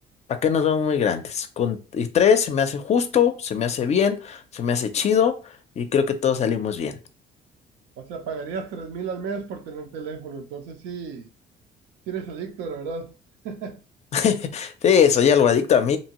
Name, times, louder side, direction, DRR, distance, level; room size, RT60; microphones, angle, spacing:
voice 1, 0.3-7.0 14.1-16.0, left 7 dB, 40° left, 0.4 m, -21 dB
voice 2, 8.0-11.3 12.1-13.1 13.4-13.8, right 5 dB, 90° right, 0.6 m, -33 dB
2.7 x 2.6 x 2.9 m
cardioid pair, 110°, 17 cm